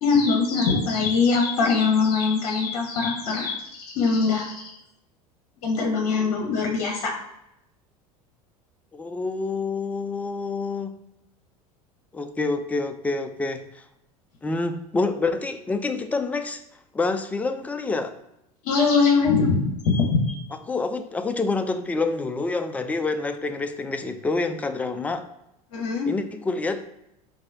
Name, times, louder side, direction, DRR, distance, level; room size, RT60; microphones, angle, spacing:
voice 1, 0.0-4.8 5.6-7.1 18.6-20.4 25.7-26.1, left 4 dB, 60° left, 2 dB, 0.8 m, -22 dB
voice 2, 8.9-10.9 12.1-13.8 14.4-16.6 16.9-18.1 20.7-25.2 26.1-26.8, left 3 dB, 10° left, 8 dB, 0.3 m, -27 dB
4.7 x 2.7 x 2.6 m, 0.82 s
figure-of-eight pair, 75°, 20 cm